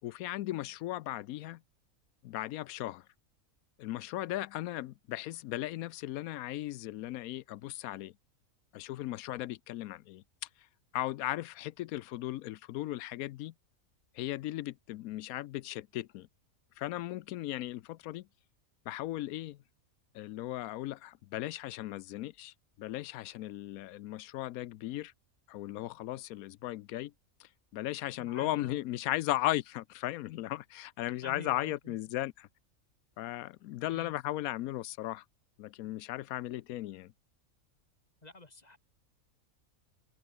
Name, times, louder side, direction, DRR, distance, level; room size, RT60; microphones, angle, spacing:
voice 1, 0.0-1.6 2.2-3.1 3.8-8.1 8.7-10.7 10.9-13.5 14.1-16.3 16.8-18.3 18.9-19.6 20.1-25.1 25.5-27.1 27.4-32.5 33.2-35.2 35.6-37.1, left 15 dB, 85° left, 1.0 m, -37 dB
voice 2, 28.2-28.8 31.2-32.0 33.9-34.1 38.2-38.8, left 2 dB, 30° left, 2.0 m, -48 dB
omnidirectional pair, 1.5 m